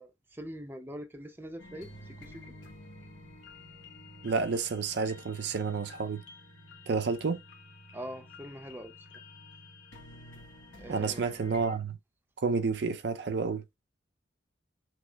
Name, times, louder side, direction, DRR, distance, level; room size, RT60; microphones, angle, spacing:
voice 1, 0.0-2.4 7.9-8.9 10.8-11.5, equal, 10° right, 0.6 m, -43 dB
sound 1, 1.6-11.8, left 2 dB, 80° left, 1.2 m, -50 dB
voice 2, 4.2-6.2 6.9-7.4 10.9-12.0 12.4-13.6, right 4 dB, 60° right, 0.5 m, -30 dB
6.1 x 2.0 x 3.3 m
head